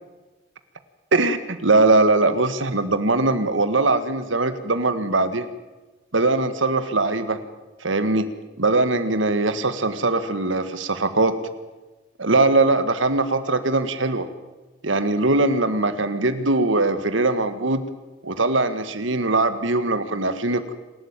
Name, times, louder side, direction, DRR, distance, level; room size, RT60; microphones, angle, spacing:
voice 1, 1.1-5.5 6.1-7.4 7.8-8.3 8.6-11.4 12.2-14.3 14.8-17.8 18.2-20.7, right 2 dB, 75° right, 11 dB, 1.8 m, -21 dB
27.0 x 13.0 x 9.0 m, 1.2 s
head